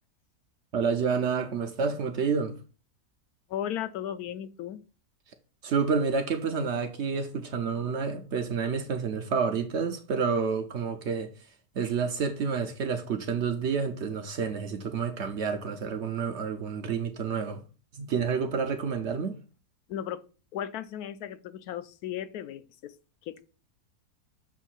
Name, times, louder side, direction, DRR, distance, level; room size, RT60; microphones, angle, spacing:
voice 1, 0.7-2.5 5.6-11.3 11.8-17.6 17.9-19.3, right 5 dB, 60° right, 0.7 m, -29 dB
voice 2, 3.5-4.8 19.9-20.2 20.5-22.9 23.2-23.4, left 10 dB, 75° left, 1.1 m, -35 dB
7.1 x 2.6 x 5.7 m
omnidirectional pair, 1.7 m